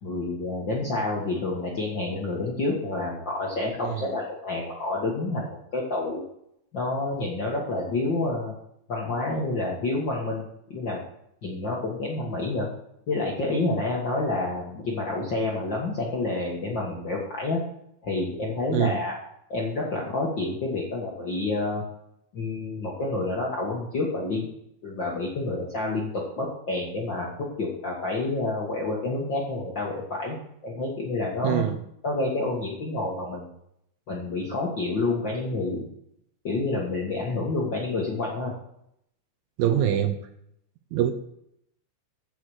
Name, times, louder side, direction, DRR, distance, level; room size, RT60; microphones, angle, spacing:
voice 1, 0.0-5.5 5.7-6.2 6.7-8.5 8.9-11.0 11.4-12.7 13.1-17.6 18.0-19.2 19.5-21.8 22.3-24.5 24.8-30.4 30.6-31.6 32.0-33.5 34.1-35.9 36.4-38.5, left 2 dB, 50° left, -3 dB, 1.4 m, -28 dB
voice 2, 31.4-31.8 39.6-40.2 40.9-41.1, right 10 dB, 75° right, 8 dB, 2.4 m, -23 dB
15.0 x 6.2 x 4.9 m, 0.76 s
omnidirectional pair, 4.4 m